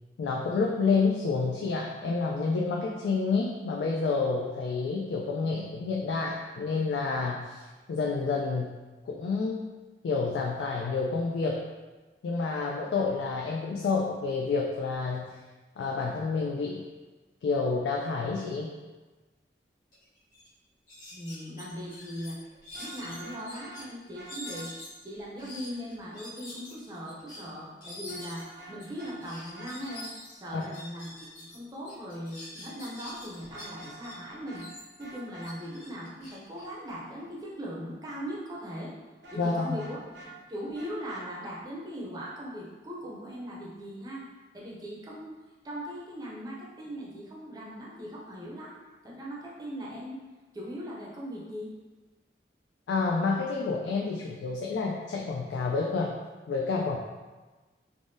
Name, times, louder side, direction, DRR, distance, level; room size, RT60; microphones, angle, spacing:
voice 1, 0.2-7.6 7.9-8.8 9.1-9.6 10.0-11.7 12.2-15.3 15.8-16.8 17.4-18.7 30.5-30.6 39.4-39.8 52.9-56.1 56.5-57.0, left 4 dB, 90° left, -2 dB, 0.3 m, -29 dB
sound 1, 19.9-20.0 20.3-20.5 20.9-23.8 24.2-31.6 31.8-34.1 34.5-37.4, left 1 dB, 50° left, 1.1 m, -46 dB
voice 2, 21.1-22.4 22.8-24.7 25.0-34.7 35.0-38.9 39.3-44.3 44.5-45.3 45.6-48.8 49.0-50.2 50.5-51.7, equal, 20° right, -4 dB, 0.5 m, -39 dB
Vehicle horn car horn honking, 22.7-23.7 24.1-24.6 28.1-28.7 29.0-29.1 29.5-30.0 33.4-34.2 34.4-34.6 35.0-35.5 39.2-40.3 40.7-41.2, right 1 dB, 85° right, 0.8 m, -47 dB
3.3 x 2.1 x 2.6 m, 1.2 s
head